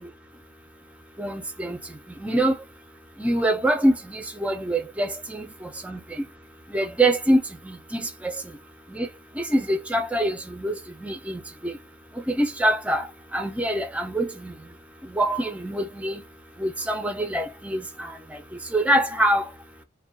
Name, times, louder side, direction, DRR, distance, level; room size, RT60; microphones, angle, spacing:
voice 1, 1.2-1.8 2.2-2.5 3.2-6.0 6.7-7.4 7.7-8.3 8.9-9.1 9.4-11.7 12.3-13.1 13.3-14.5 15.1-16.2 16.6-18.1 18.7-19.4, right 1 dB, 5° right, 0.4 m, -24 dB
2.3 x 2.1 x 2.6 m
head